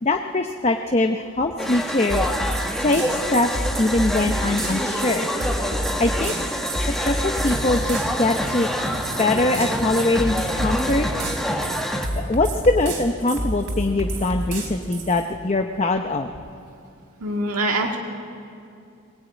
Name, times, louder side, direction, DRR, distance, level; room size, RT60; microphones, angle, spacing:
voice 1, 0.0-5.3 6.0-6.3 6.8-8.7 9.2-11.1 11.6-11.7 12.2-16.3, left 2 dB, 30° left, 5 dB, 0.7 m, -23 dB
sound 1, 1.6-12.1, equal, ahead, 1.4 m, -27 dB
sound 2, 2.1-15.3, right 1 dB, 60° right, 3.7 m, -29 dB
voice 2, 17.2-18.0, right 2 dB, 85° right, 1 dB, 1.8 m, -23 dB
21.5 x 17.5 x 9.2 m, 2.5 s
head